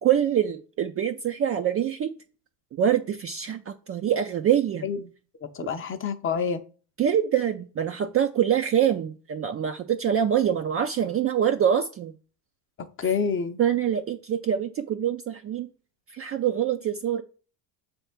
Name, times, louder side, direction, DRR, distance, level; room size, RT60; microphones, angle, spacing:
voice 1, 0.0-2.1 2.7-4.8 7.0-12.1 13.6-15.7 16.1-17.2, right 9 dB, 30° right, 6 dB, 0.4 m, -25 dB
voice 2, 4.8-5.1 5.4-6.6 12.8-13.6, left 6 dB, 25° left, 9 dB, 0.6 m, -28 dB
6.9 x 3.5 x 5.7 m, 0.37 s
cardioid pair, 120°, 50 cm